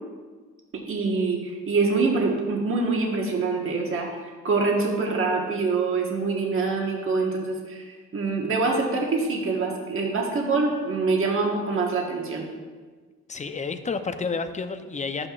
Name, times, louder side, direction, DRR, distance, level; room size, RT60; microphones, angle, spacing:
voice 1, 0.7-12.5, right 3 dB, 45° right, 0 dB, 1.4 m, -25 dB
voice 2, 13.3-15.3, left 4 dB, 25° left, 8 dB, 0.6 m, -30 dB
11.5 x 8.7 x 2.5 m, 1.4 s
cardioid pair, 90°, 30 cm